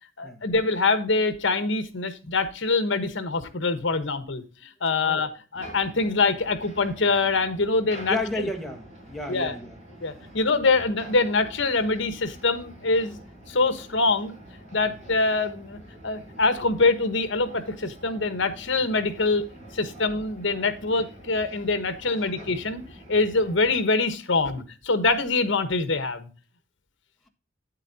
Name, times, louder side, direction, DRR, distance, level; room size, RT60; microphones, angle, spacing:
voice 1, 0.2-4.4 4.8-8.5 9.3-9.6 10.0-13.1 13.5-14.3 14.7-19.4 19.7-22.8 23.1-26.3, left 3 dB, 65° left, 11 dB, 1.2 m, -24 dB
sound 1, 5.5-23.8, right 1 dB, 40° right, 4.8 m, -46 dB
voice 2, 8.1-10.3 14.8-15.0 22.1-22.3, left 1 dB, ahead, 3 dB, 1.3 m, -34 dB
9.3 x 8.3 x 2.7 m, 0.35 s
head